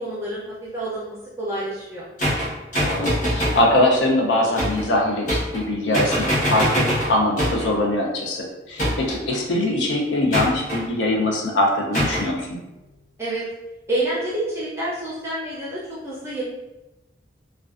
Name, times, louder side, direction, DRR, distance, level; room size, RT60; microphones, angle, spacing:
voice 1, 0.0-2.0 13.2-13.5 13.9-16.4, right 1 dB, 15° right, -8 dB, 0.4 m, -28 dB
sound 1, 2.2-3.7 4.6-4.9 5.3-5.7 5.9-7.7 8.8-9.3 10.3-10.8 11.9-12.3, equal, 40° left, 0.9 m, -23 dB
voice 2, 2.8-12.5, left 1 dB, 85° left, 0 dB, 0.5 m, -22 dB
2.4 x 2.2 x 2.4 m, 0.99 s
head